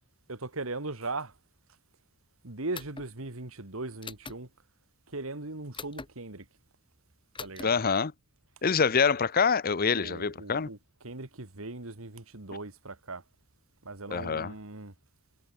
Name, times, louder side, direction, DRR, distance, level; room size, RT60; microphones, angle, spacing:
voice 1, 0.3-1.3 2.4-4.5 5.1-6.5 7.4-7.8 9.9-13.2 13.8-14.9, right 2 dB, 70° right, 2.3 m, -39 dB
sound 1, 2.7-3.1 4.0-4.4 5.7-6.1 7.4-7.7, left 4 dB, 25° left, 2.5 m, -41 dB
voice 2, 7.6-8.1 8.6-10.7 14.1-14.5, left 5 dB, 45° left, 0.7 m, -25 dB
head